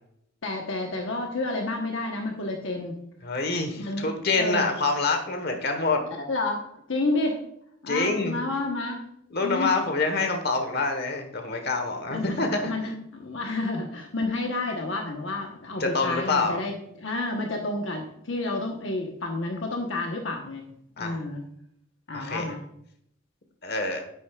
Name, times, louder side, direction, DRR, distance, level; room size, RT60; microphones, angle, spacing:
voice 1, 0.4-3.0 3.8-4.7 6.1-6.6 6.9-7.4 7.8-9.0 9.4-9.8 12.1-20.6 21.0-21.4 22.1-22.6, left 2 dB, 70° left, 2 dB, 1.1 m, -30 dB
voice 2, 3.2-6.0 7.9-8.4 9.3-12.7 15.8-16.6 21.0-21.2 22.1-22.5 23.6-24.0, left 3 dB, 55° left, 5 dB, 1.2 m, -26 dB
10.0 x 8.3 x 2.4 m, 0.71 s
head